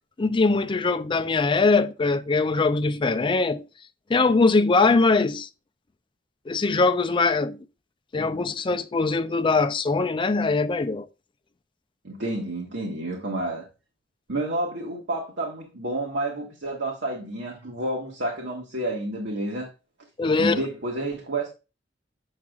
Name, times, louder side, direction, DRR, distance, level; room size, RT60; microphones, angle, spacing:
voice 1, 0.2-3.6 4.1-5.5 6.5-7.6 8.1-11.1 20.2-20.6, left 3 dB, 25° left, 0.4 m, -22 dB
voice 2, 12.0-13.7 14.3-19.7 20.4-21.5, right 1 dB, 70° right, 1.6 m, -30 dB
7.5 x 7.2 x 2.4 m
head